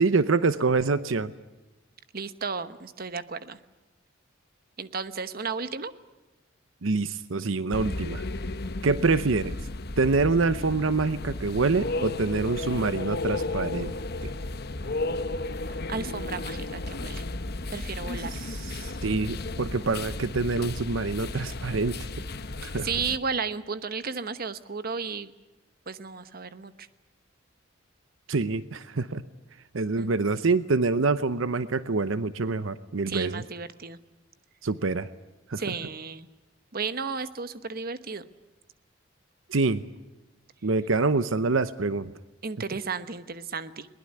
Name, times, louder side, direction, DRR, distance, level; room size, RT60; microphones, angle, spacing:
voice 1, 0.0-1.3 6.8-8.2 8.8-9.5 10.0-13.9 14.2-14.3 18.3-22.1 22.6-22.9 28.3-29.2 29.7-33.4 34.6-35.1 35.5-35.6 39.5-39.8 40.6-42.1, right 3 dB, 80° right, 14 dB, 0.8 m, -26 dB
voice 2, 2.1-3.6 4.8-5.9 15.7-17.2 17.7-18.3 19.2-19.8 22.8-25.3 25.9-26.9 29.9-30.1 33.1-34.0 35.6-36.3 36.7-38.3 42.4-43.9, right 5 dB, 50° right, 12 dB, 1.1 m, -34 dB
sound 1, 7.7-23.2, left 2 dB, 55° left, 1.1 m, -34 dB
21.5 x 20.0 x 9.6 m, 1.1 s
head